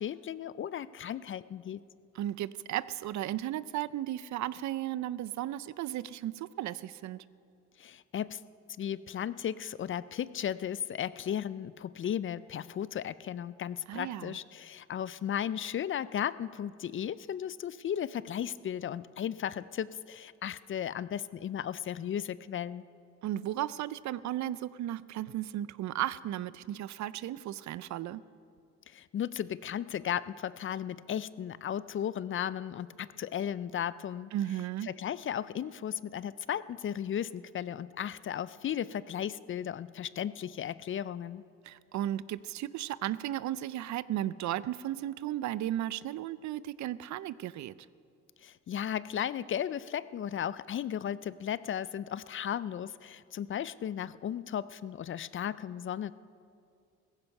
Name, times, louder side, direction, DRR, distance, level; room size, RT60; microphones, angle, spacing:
voice 1, 0.0-1.8 7.8-8.4 8.8-22.8 28.9-34.3 34.8-41.4 48.4-56.1, left 9 dB, 45° left, 17 dB, 0.4 m, -35 dB
voice 2, 2.1-7.2 13.9-14.4 23.2-28.2 34.3-34.9 41.6-47.7, right 13 dB, 70° right, 18 dB, 0.5 m, -35 dB
16.0 x 15.0 x 5.4 m, 2.4 s
cardioid pair, 90°, 30 cm